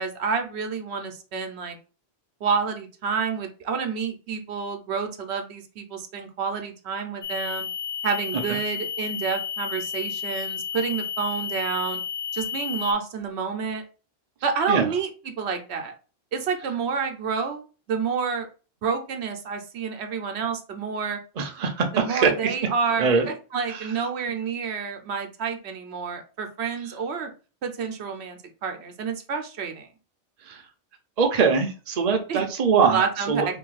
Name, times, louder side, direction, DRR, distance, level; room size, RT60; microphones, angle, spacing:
voice 1, 0.0-1.8 2.4-7.7 8.0-12.0 12.3-13.8 14.4-15.9 16.3-18.5 18.8-21.2 21.9-27.3 27.6-29.9 32.3-32.4 32.8-33.6, right 5 dB, 85° right, 5 dB, 1.0 m, -29 dB
sound 1, 7.2-12.9, left 7 dB, 55° left, 0.6 m, -32 dB
voice 2, 21.4-22.3 23.0-23.3 23.7-23.9 30.5-30.6 31.2-33.0 33.3-33.6, right 5 dB, 45° right, 4 dB, 0.7 m, -22 dB
3.0 x 2.7 x 3.9 m, 0.35 s
omnidirectional pair, 1.1 m